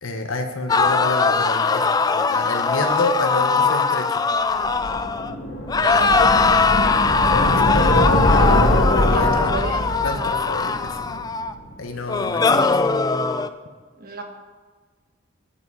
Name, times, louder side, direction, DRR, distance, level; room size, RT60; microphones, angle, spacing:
voice 1, 0.0-4.3 7.3-8.2 8.7-9.6 10.0-11.1 11.8-12.8, left 2 dB, 85° left, 5 dB, 1.1 m, -29 dB
sound 1, 0.7-5.3 5.7-11.5 12.1-13.5, left 4 dB, 20° left, 0.3 m, -20 dB
sound 2, 4.6-11.7, equal, 65° left, 1.6 m, -22 dB
voice 2, 5.8-6.5 9.1-9.9 14.0-14.2, right 3 dB, 45° right, 4 dB, 1.3 m, -30 dB
10.5 x 7.3 x 5.5 m, 1.4 s
head